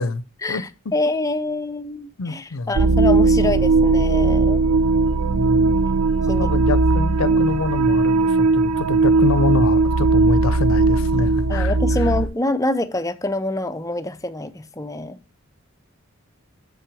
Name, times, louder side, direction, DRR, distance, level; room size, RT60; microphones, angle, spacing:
voice 1, 0.4-4.6 6.3-6.5 7.3-7.4 11.5-15.2, left 2 dB, 15° left, 0.6 m, -26 dB
voice 2, 2.2-2.8 5.2-5.7 6.4-11.7, left 3 dB, 90° left, 0.6 m, -25 dB
sound 1, 2.8-12.2, right 3 dB, 85° right, 0.6 m, -18 dB
7.7 x 6.0 x 4.8 m
head